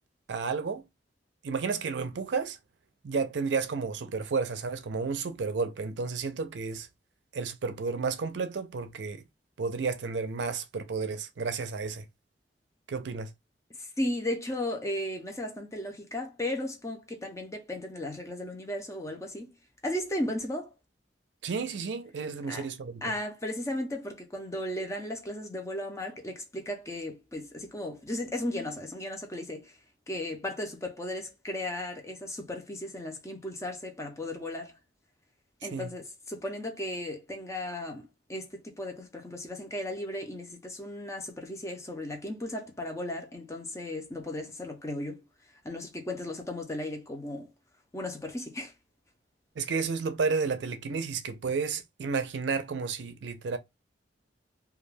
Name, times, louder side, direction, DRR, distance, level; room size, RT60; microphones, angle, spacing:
voice 1, 0.3-0.8 1.4-2.6 3.0-6.9 7.3-9.2 9.6-12.1 12.9-13.3 21.4-23.1 35.6-35.9 49.6-53.6, right 4 dB, 75° right, 0.4 m, -32 dB
voice 2, 13.8-19.5 19.8-20.7 22.5-22.7 23.0-29.7 30.1-34.7 35.6-45.2 45.6-47.5 47.9-48.7, left 1 dB, 15° left, 0.5 m, -35 dB
2.3 x 2.2 x 3.2 m
head